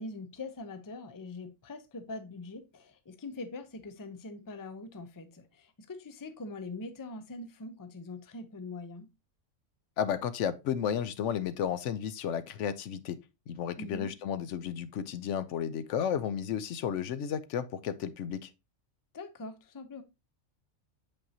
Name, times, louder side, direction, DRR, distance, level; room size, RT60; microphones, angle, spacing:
voice 1, 0.0-9.1 13.8-14.1 19.1-20.0, left 2 dB, 25° left, 0.5 m, -43 dB
voice 2, 10.0-13.2 13.5-18.5, left 8 dB, 75° left, 0.9 m, -33 dB
7.4 x 5.3 x 2.7 m
omnidirectional pair, 1.3 m